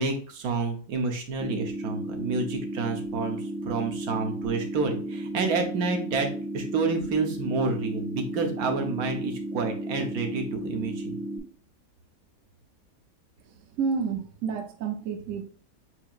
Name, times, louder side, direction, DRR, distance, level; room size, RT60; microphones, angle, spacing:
voice 1, 0.0-6.3 6.5-11.2, right 4 dB, 85° right, 4 dB, 1.3 m, -29 dB
sound 1, 1.4-11.4, right 1 dB, 10° right, 1.2 m, -34 dB
voice 2, 13.8-15.4, right 6 dB, 70° right, 5 dB, 1.0 m, -29 dB
7.8 x 2.8 x 2.4 m, 0.42 s
omnidirectional pair, 1.5 m